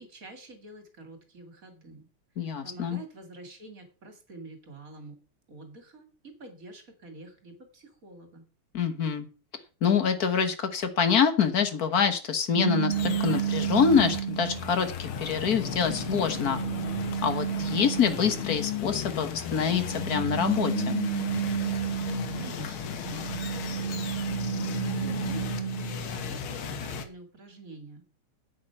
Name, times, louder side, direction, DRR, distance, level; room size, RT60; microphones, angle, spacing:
voice 1, 0.0-2.1 2.4-5.2 5.5-8.5 22.4-24.0 24.6-28.1, right 3 dB, 40° right, 7 dB, 2.8 m, -47 dB
voice 2, 2.4-3.0 8.7-9.2 9.8-16.6 17.2-21.0, left 6 dB, 45° left, 10 dB, 1.6 m, -26 dB
sound 1, 12.5-14.7 15.4-18.5 19.6-22.6 23.0-26.0, right 9 dB, 60° right, 0.6 m, -32 dB
sound 2, 12.9-27.1, left 7 dB, 70° left, 2.0 m, -35 dB
8.9 x 8.6 x 5.8 m, 0.35 s
omnidirectional pair, 2.4 m